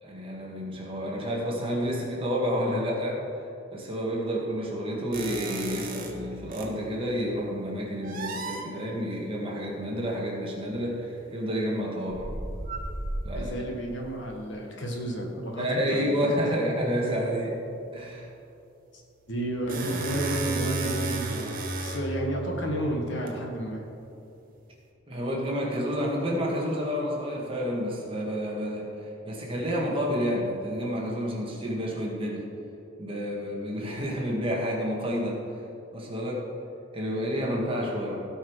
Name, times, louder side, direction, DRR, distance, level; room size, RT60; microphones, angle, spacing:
voice 1, 0.0-3.2 3.7-12.3 13.2-13.7 15.6-17.6 17.9-18.3 25.1-32.5 33.0-35.4 35.9-36.5 36.9-38.2, equal, 25° right, -3 dB, 1.9 m, -30 dB
sound 1, 5.1-6.8 8.0-8.7 10.7-10.8 12.1-13.7 19.2-23.3, right 2 dB, 45° right, 1.1 m, -34 dB
voice 2, 13.3-16.3 18.9-19.0 19.3-23.8, right 1 dB, 65° left, 1 dB, 1.6 m, -32 dB
16.5 x 5.6 x 4.8 m, 2.7 s
head